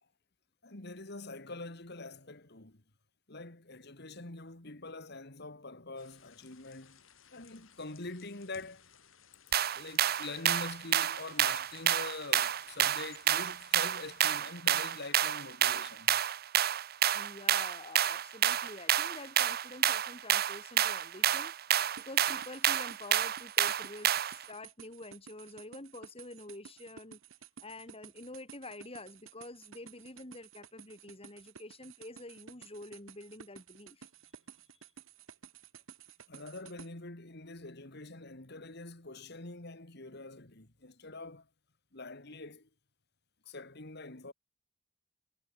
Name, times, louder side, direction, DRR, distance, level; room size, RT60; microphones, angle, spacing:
voice 1, 0.6-2.8 3.3-7.0 7.3-8.9 9.7-16.2 36.3-41.5 41.9-42.7 43.5-44.3, left 2 dB, 55° left, 2.6 m, -45 dB
sound 1, 6.0-14.2, left 8 dB, 85° left, 6.3 m, -61 dB
sound 2, 9.5-24.4, right 11 dB, 50° right, 0.7 m, -29 dB
voice 2, 17.1-21.5 22.0-27.2 27.6-34.1, left 2 dB, 30° left, 4.0 m, -48 dB
sound 3, 22.0-36.9, right 7 dB, 90° right, 1.5 m, -53 dB
head